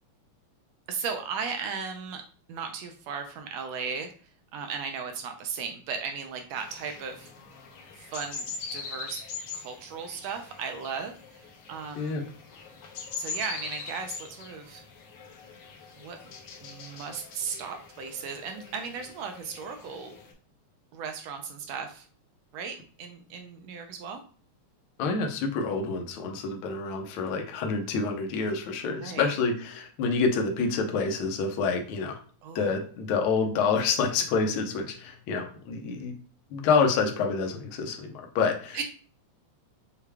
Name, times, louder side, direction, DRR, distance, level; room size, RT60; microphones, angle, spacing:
voice 1, 0.9-2.2 2.5-4.1 4.5-7.3 8.0-9.2 9.5-12.2 13.1-14.8 16.0-16.2 16.6-20.2 20.9-22.0 22.5-24.2 29.0-29.3 32.4-32.7 38.7-38.8, right 6 dB, 80° right, 6 dB, 1.6 m, -36 dB
sound 1, 6.6-20.3, left 5 dB, 65° left, 1.5 m, -42 dB
voice 2, 25.0-32.2 32.5-36.1 36.5-38.8, left 4 dB, 85° left, 3 dB, 1.1 m, -27 dB
6.5 x 2.2 x 3.4 m, 0.43 s
omnidirectional pair, 3.3 m